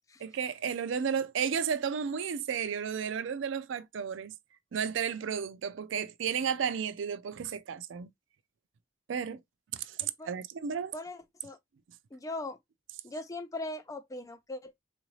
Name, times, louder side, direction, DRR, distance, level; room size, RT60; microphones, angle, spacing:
voice 1, 0.2-4.3 4.7-8.1 9.1-9.4 9.7-10.0 10.2-10.9, right 7 dB, 70° right, 0.4 m, -33 dB
voice 2, 10.0-10.3 10.9-11.6 12.1-12.6 13.0-14.7, left 2 dB, 15° left, 0.4 m, -40 dB
3.8 x 2.5 x 3.0 m
head